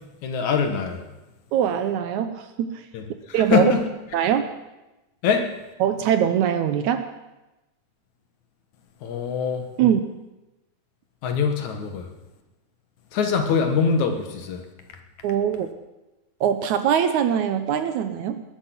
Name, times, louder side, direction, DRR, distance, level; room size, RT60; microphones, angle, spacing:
voice 1, 0.2-1.0 2.9-3.8 5.2-5.4 9.0-9.6 11.2-12.1 13.1-14.6, left 6 dB, 65° left, 5 dB, 2.7 m, -23 dB
voice 2, 1.5-2.8 3.3-3.7 4.1-4.4 5.8-7.1 9.8-10.0 15.2-15.7 16.4-18.4, right 9 dB, 70° right, 10 dB, 2.0 m, -22 dB
20.0 x 11.0 x 6.0 m, 1.0 s
omnidirectional pair, 3.8 m